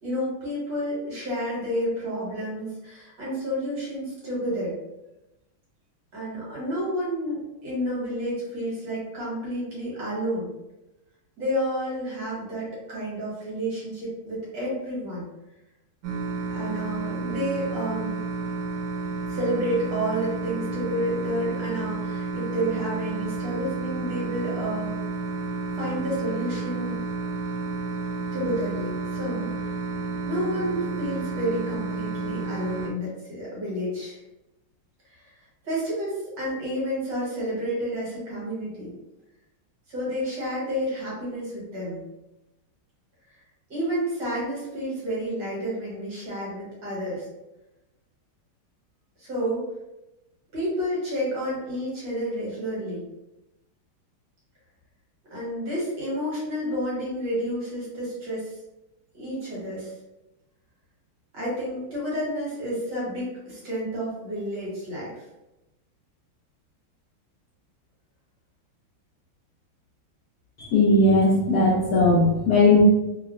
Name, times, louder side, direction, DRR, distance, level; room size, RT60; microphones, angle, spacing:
voice 1, 0.0-4.7 6.1-10.5 11.4-15.3 16.5-18.2 19.3-25.0 25.7-27.0 28.3-29.7 30.3-34.2 35.1-35.3 35.6-38.9 39.9-42.0 43.7-47.3 49.2-49.7 50.5-53.1 55.3-58.6 59.1-59.9 61.3-65.2, equal, 60° right, -7 dB, 1.7 m, -30 dB
sound 1, 16.0-32.9, right 3 dB, 80° right, 1.5 m, -31 dB
voice 2, 70.7-72.8, left 2 dB, 80° left, -5 dB, 0.8 m, -18 dB
3.6 x 2.1 x 2.4 m, 0.97 s
omnidirectional pair, 2.3 m